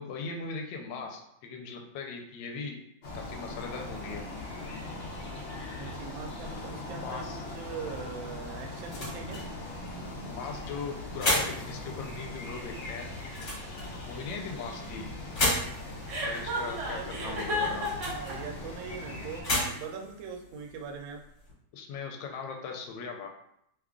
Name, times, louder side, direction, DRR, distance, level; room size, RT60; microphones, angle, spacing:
voice 1, 0.0-2.8 3.1-4.2 6.9-7.4 10.3-13.1 14.0-15.1 16.2-17.9 21.7-23.3, left 5 dB, 80° left, 3 dB, 1.3 m, -39 dB
sound 1, 3.0-19.4, left 2 dB, 65° left, 0.7 m, -40 dB
voice 2, 5.8-9.4 16.9-17.6 18.1-21.2, right 6 dB, 90° right, 3 dB, 1.3 m, -41 dB
sound 2, 8.4-21.5, left 1 dB, 40° left, 1.3 m, -36 dB
Chuckle chortle, 16.1-18.3, equal, 65° right, 0.7 m, -32 dB
3.2 x 2.3 x 3.6 m, 0.75 s
omnidirectional pair, 2.1 m